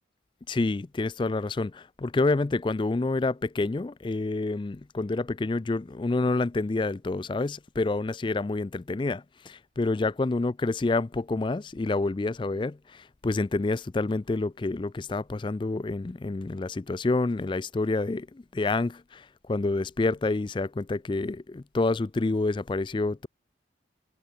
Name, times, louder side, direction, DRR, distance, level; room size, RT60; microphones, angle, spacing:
voice 1, 0.5-23.3, left 3 dB, 25° left, 0.4 m, -28 dB
head